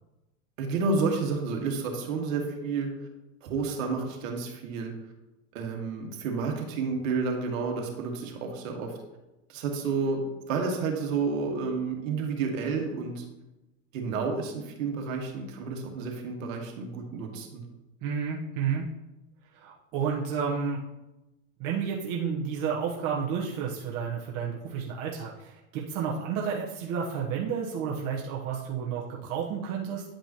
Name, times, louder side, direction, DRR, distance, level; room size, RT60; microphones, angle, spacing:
voice 1, 0.6-2.9 3.4-4.9 5.5-9.0 9.5-13.2 13.9-17.6, right 4 dB, 70° right, 2 dB, 1.9 m, -30 dB
voice 2, 18.0-18.9 19.6-20.8 21.6-30.0, right 6 dB, 45° right, -3 dB, 1.2 m, -31 dB
10.0 x 5.3 x 3.0 m, 0.98 s
supercardioid pair, 115°, 41 cm